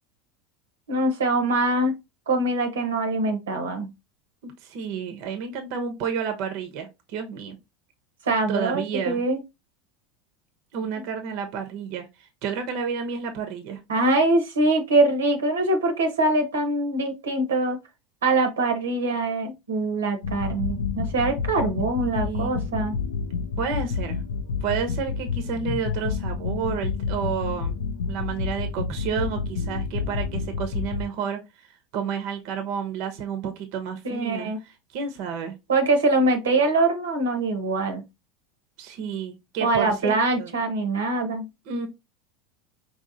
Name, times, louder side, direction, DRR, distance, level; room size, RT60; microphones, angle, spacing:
voice 1, 0.9-1.9 2.3-3.9 8.3-9.4 13.9-17.8 18.2-22.9 34.0-34.6 35.7-38.0 39.6-41.5, right 2 dB, 85° right, 1.1 m, -23 dB
voice 2, 4.4-7.6 8.5-9.2 10.7-13.8 22.0-22.6 23.6-24.2 24.6-27.8 28.1-35.5 38.8-40.5 41.7-41.9, right 6 dB, 60° right, 1.0 m, -31 dB
sound 1, 20.2-31.0, left 5 dB, 80° left, 0.5 m, -29 dB
5.0 x 3.0 x 2.8 m
hypercardioid pair, 85°, 0 cm